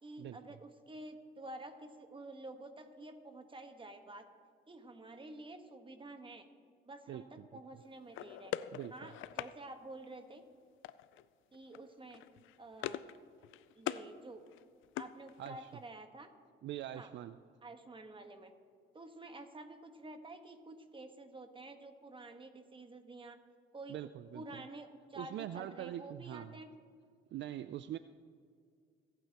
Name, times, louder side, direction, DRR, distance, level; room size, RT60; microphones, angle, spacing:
voice 1, 0.0-4.3 4.7-6.5 6.8-8.5 8.9-10.4 11.5-12.2 12.6-13.0 13.7-14.4 15.0-16.3 16.9-17.1 17.6-18.5 18.9-23.4 23.7-24.1 24.3-26.7, right 2 dB, 25° right, 6 dB, 1.3 m, -50 dB
voice 2, 7.1-7.5 8.7-8.9 15.4-15.7 16.6-17.3 23.9-24.6 25.2-26.5 27.3-28.0, right 12 dB, 65° right, 13 dB, 0.4 m, -43 dB
sound 1, 8.1-9.5 10.8-11.2 11.5-11.8 12.1-13.2 13.4-14.1 14.5-15.7, left 13 dB, 85° left, 0.4 m, -42 dB
26.0 x 9.0 x 2.9 m, 2.1 s
cardioid pair, 90°, 20 cm